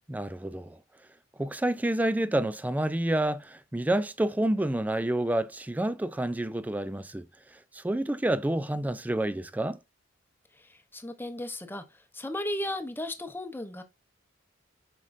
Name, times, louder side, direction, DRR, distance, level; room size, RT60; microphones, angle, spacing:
voice 1, 0.1-0.8 1.4-7.2 7.7-9.8, right 1 dB, 10° right, 0.3 m, -28 dB
voice 2, 10.5-13.8, left 1 dB, 10° left, 0.8 m, -35 dB
7.5 x 5.0 x 2.5 m
head